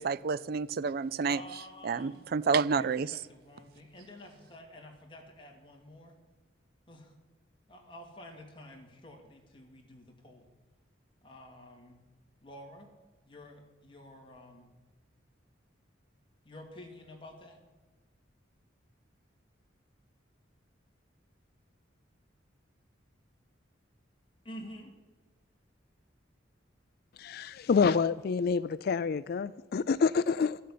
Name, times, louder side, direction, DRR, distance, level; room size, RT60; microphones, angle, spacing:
voice 1, 0.0-1.4 1.8-3.1, right 5 dB, 55° right, 18 dB, 0.4 m, -29 dB
voice 2, 1.3-2.2 2.5-3.0 3.3-6.1 6.9-7.1 7.7-10.4 11.2-12.0 12.4-12.9 13.3-14.7 16.4-17.6 24.4-24.9, left 1 dB, 25° left, 0 dB, 2.4 m, -49 dB
voice 3, 27.2-30.6, left 5 dB, 55° left, 15 dB, 0.3 m, -27 dB
13.5 x 7.7 x 8.5 m, 1.3 s
head